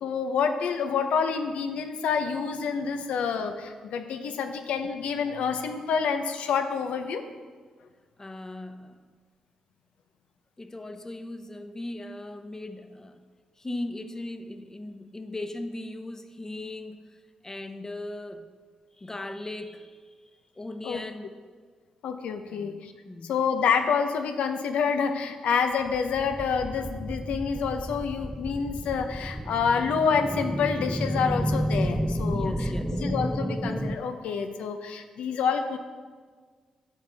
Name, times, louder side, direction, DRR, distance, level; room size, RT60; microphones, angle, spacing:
voice 1, 0.0-7.2 20.8-21.0 22.0-22.9 23.2-35.8, left 6 dB, 80° left, 7 dB, 0.7 m, -28 dB
voice 2, 8.2-9.0 10.6-13.2 13.6-17.1 17.4-18.5 19.0-20.1 20.5-21.3 22.5-22.8 23.0-23.3 32.3-33.0, left 2 dB, 25° left, 8 dB, 0.8 m, -38 dB
sound 1, 25.8-34.0, equal, 5° right, 0.5 m, -31 dB
11.5 x 7.2 x 3.5 m, 1.5 s
supercardioid pair, 50°, 2 cm